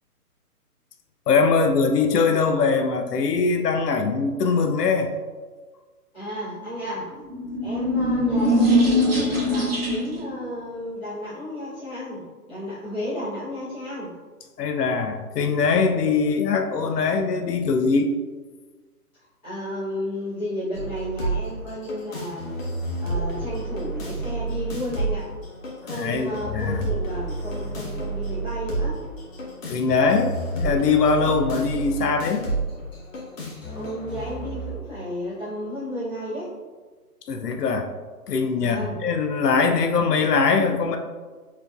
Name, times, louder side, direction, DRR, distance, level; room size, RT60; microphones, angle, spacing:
voice 1, 1.3-5.1 14.6-18.1 25.9-26.8 29.7-32.4 37.3-37.9 38.3-41.0, left 4 dB, 85° left, 5 dB, 0.6 m, -22 dB
voice 2, 6.1-7.1 7.6-14.1 19.4-22.7 23.0-25.3 25.8-29.0 33.7-36.5 38.6-39.0, equal, 10° left, -18 dB, 1.0 m, -33 dB
sound 1, 7.2-10.3, equal, 40° right, 0.7 m, -21 dB
sound 2, 20.7-34.7, right 2 dB, 55° left, 1.3 m, -30 dB
4.6 x 3.5 x 2.3 m, 1.4 s
hypercardioid pair, 175°, 46 cm